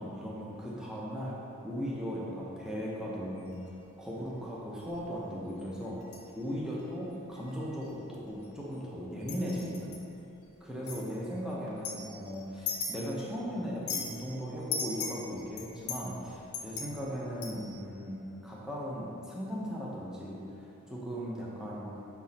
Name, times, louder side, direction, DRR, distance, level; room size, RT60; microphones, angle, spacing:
voice 1, 0.0-1.4 1.6-3.7 4.0-6.0 6.4-9.9 10.6-21.9, equal, 5° right, -6 dB, 0.8 m, -37 dB
sound 1, 3.4-3.7 4.8-5.0 5.6-6.3 6.7-6.8 7.3-7.6 7.8-8.8 9.2-10.0 10.9-11.0 11.7-13.3 13.6-14.2 14.7-17.8, left 5 dB, 90° left, 0.9 m, -38 dB
6.1 x 4.7 x 4.1 m, 2.8 s
head